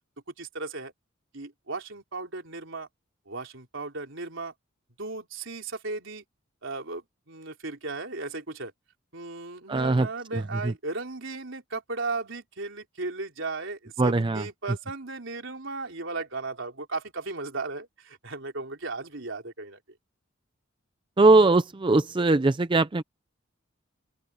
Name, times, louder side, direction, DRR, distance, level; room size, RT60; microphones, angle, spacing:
voice 1, 0.4-0.9 1.3-2.9 3.3-4.5 5.0-6.2 6.6-8.7 9.1-19.8, right 3 dB, 65° right, 4.2 m, -36 dB
voice 2, 9.7-10.1 10.3-10.7 14.0-14.4 21.2-23.0, right 2 dB, 25° right, 0.5 m, -21 dB
open air
head